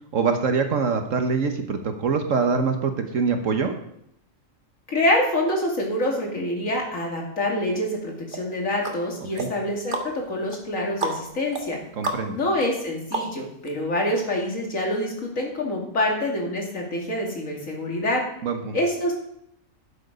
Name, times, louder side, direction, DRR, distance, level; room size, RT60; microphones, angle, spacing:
voice 1, 0.1-3.7 9.3-9.5 12.0-12.4 18.4-18.8, right 5 dB, 70° right, 5 dB, 1.4 m, -24 dB
voice 2, 4.9-11.8 12.3-18.2 18.7-19.1, left 1 dB, 75° left, -1 dB, 2.8 m, -26 dB
sound 1, 8.3-13.7 14.1-14.2, right 2 dB, 40° right, 1.6 m, -33 dB
12.0 x 7.6 x 5.1 m, 0.74 s
omnidirectional pair, 1.4 m